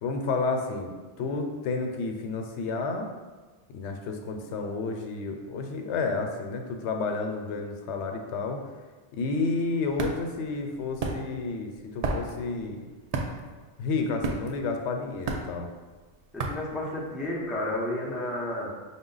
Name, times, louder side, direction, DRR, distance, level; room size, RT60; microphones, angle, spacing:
voice 1, 0.0-3.1 3.7-8.6 9.1-12.8 13.8-15.7, left 3 dB, 90° left, 4 dB, 0.9 m, -31 dB
sound 1, 9.4-17.5, right 3 dB, 65° right, 0.4 m, -34 dB
voice 2, 16.3-18.7, left 1 dB, ahead, -4 dB, 0.5 m, -31 dB
5.4 x 2.2 x 3.8 m, 1.3 s
omnidirectional pair, 1.1 m